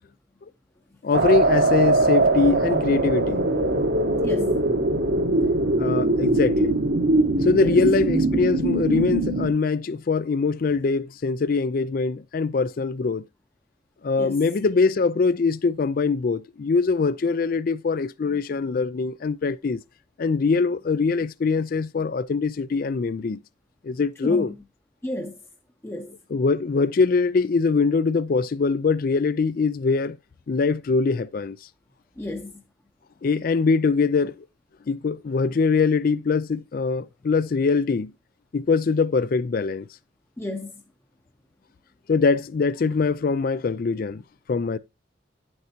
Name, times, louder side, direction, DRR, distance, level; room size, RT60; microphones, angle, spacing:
voice 1, 1.0-3.4 5.8-6.8 7.4-13.2 14.0-19.8 20.2-23.4 23.8-24.5 26.3-30.2 30.5-31.6 33.2-34.3 34.9-38.1 38.5-39.9 42.1-44.2 44.5-44.8, left 4 dB, 50° left, 0.4 m, -23 dB
sound 1, 1.1-9.5, right 2 dB, 65° right, 1.2 m, -21 dB
voice 2, 4.2-4.6 7.5-7.8 14.2-14.4 24.2-24.6 25.0-25.4 25.8-26.2 32.2-32.6 40.4-40.8, left 1 dB, 15° left, 0.7 m, -32 dB
10.5 x 7.9 x 2.8 m
head